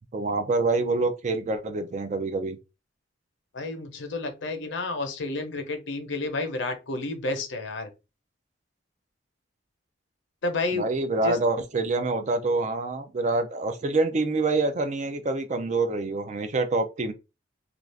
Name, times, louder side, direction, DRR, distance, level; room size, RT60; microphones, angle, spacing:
voice 1, 0.1-2.6 10.7-17.1, right 3 dB, 35° right, 0.4 m, -26 dB
voice 2, 3.5-7.9 10.4-10.9 11.2-11.4, left 3 dB, 70° left, 0.7 m, -30 dB
2.5 x 2.3 x 3.3 m
head